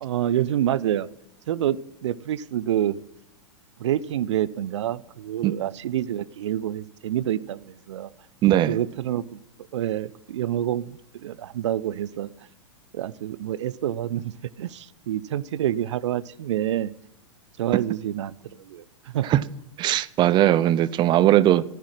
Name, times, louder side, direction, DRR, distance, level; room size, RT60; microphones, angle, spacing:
voice 1, 0.0-1.1 1.5-3.0 3.8-8.1 8.7-9.4 9.7-12.3 12.9-14.3 14.6-16.9 17.6-19.3, right 11 dB, 60° right, 0.7 m, -27 dB
voice 2, 8.4-8.8 19.2-19.4 19.8-21.6, right 13 dB, 30° right, 0.6 m, -19 dB
14.5 x 10.5 x 7.6 m
figure-of-eight pair, 100°, 17 cm